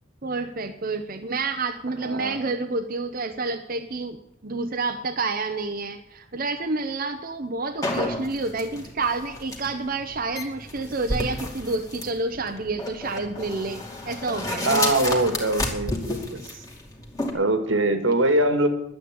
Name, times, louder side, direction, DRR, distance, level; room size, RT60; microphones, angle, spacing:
voice 1, 0.2-14.7, right 3 dB, 45° right, 5 dB, 0.9 m, -29 dB
voice 2, 2.0-2.4 14.7-16.6 17.3-18.7, right 2 dB, 75° right, 8 dB, 1.9 m, -23 dB
sound 1, 7.8-17.3, left 2 dB, 15° left, 2.4 m, -31 dB
11.5 x 9.6 x 8.8 m, 0.79 s
head